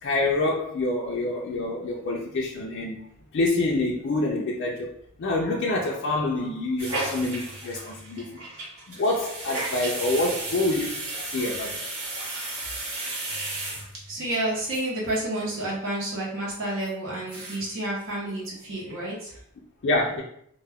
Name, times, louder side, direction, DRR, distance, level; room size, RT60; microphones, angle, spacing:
voice 1, 0.0-3.0 3.3-4.9 5.2-8.3 8.9-11.8 19.8-20.2, left 2 dB, 55° left, -2 dB, 0.4 m, -26 dB
sound 1, 6.8-14.4 14.7-14.8 15.1-15.2 15.5-15.8 16.2-16.3 16.8-16.9 17.2-17.8 18.0-18.1 18.4-18.9 19.3-19.4, right 2 dB, 85° right, 1.0 m, -34 dB
voice 2, 14.1-19.3, right 1 dB, 65° right, -5 dB, 0.8 m, -30 dB
2.2 x 2.2 x 3.4 m, 0.68 s
head